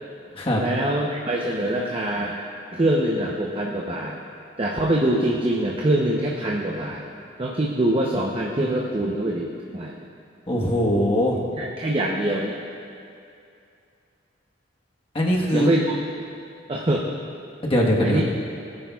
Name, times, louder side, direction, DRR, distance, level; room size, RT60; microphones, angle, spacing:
voice 1, 0.6-2.4 2.7-4.2 4.6-7.0 7.4-10.1 11.6-12.6 15.5-15.8 16.7-17.1 18.0-18.2, right 1 dB, 30° right, -2 dB, 0.7 m, -24 dB
voice 2, 10.5-11.5 15.1-15.7 17.6-18.2, equal, 30° left, -2 dB, 1.3 m, -21 dB
17.5 x 9.9 x 2.4 m, 2.5 s
head